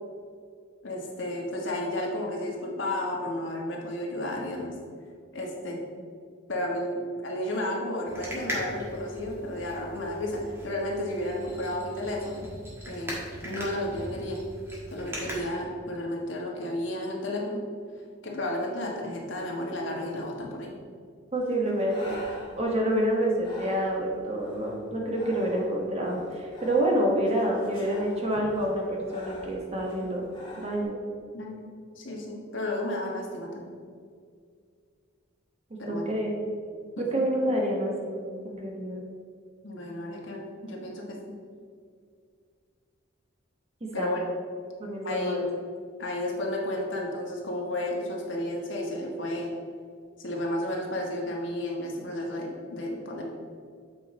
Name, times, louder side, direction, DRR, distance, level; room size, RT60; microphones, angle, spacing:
voice 1, 0.8-4.7 5.3-5.8 6.5-12.4 12.8-14.4 14.9-17.6 18.2-20.7 31.3-31.6 32.0-33.7 35.8-36.1 39.6-41.2 43.9-44.2 45.0-45.6 46.0-49.5 50.2-53.2, left 1 dB, 70° left, -1 dB, 1.5 m, -32 dB
sound 1, 8.1-15.4, equal, 10° right, 1.4 m, -39 dB
Breathing, 21.3-30.8, left 1 dB, 25° left, 1.6 m, -47 dB
voice 2, 21.3-22.2 22.5-30.3 30.6-31.0 35.9-36.3 37.0-39.0 43.9-44.1 44.8-45.4, right 1 dB, 35° right, -1 dB, 1.2 m, -28 dB
8.1 x 4.9 x 4.2 m, 2.1 s
head